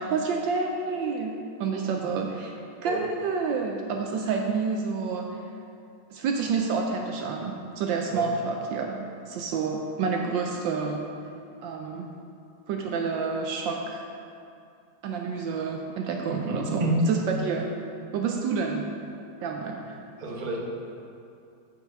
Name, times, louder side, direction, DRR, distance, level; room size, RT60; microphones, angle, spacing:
voice 1, 0.0-5.4 6.1-11.0 11.6-12.1 12.7-14.1 15.0-17.7 18.1-18.9 19.4-20.0, right 5 dB, 75° right, 2 dB, 1.2 m, -29 dB
voice 2, 16.4-17.0 20.2-20.7, right 2 dB, 40° right, -2 dB, 0.7 m, -29 dB
8.7 x 5.4 x 4.6 m, 2.5 s
omnidirectional pair, 2.3 m